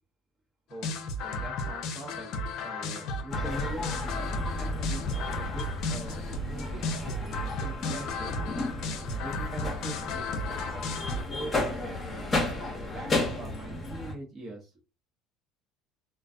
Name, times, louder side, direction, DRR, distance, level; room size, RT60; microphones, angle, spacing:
sound 1, 0.7-11.2, left 2 dB, 60° left, 0.5 m, -34 dB
voice 1, 0.7-2.3 2.6-3.9 4.5-8.4 9.2-12.3 12.8-14.7, right 1 dB, 35° right, -1 dB, 1.0 m, -43 dB
sound 2, 3.3-14.1, left 2 dB, 25° left, 0.8 m, -33 dB
2.2 x 2.2 x 2.6 m, 0.31 s
supercardioid pair, 90°, 0 cm